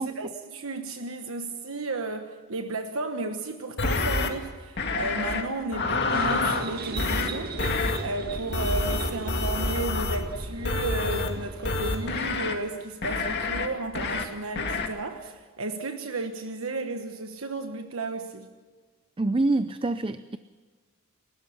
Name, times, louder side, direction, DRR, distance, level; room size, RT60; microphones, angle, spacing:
voice 1, 0.0-7.6 8.0-18.5, right 2 dB, 70° right, 6 dB, 1.3 m, -33 dB
sound 1, 3.8-4.3 4.8-5.4 5.7-6.6 7.0-7.3 7.6-8.0 8.5-10.2 10.6-11.3 11.6-12.5 13.0-13.7 13.9-14.2 14.6-14.9, left 3 dB, 50° left, 2.2 m, -27 dB
sound 2, 6.1-12.3, right 2 dB, 45° right, 1.7 m, -37 dB
voice 2, 19.2-20.4, right 2 dB, 25° right, 12 dB, 0.5 m, -26 dB
29.5 x 13.0 x 7.1 m, 1.4 s
head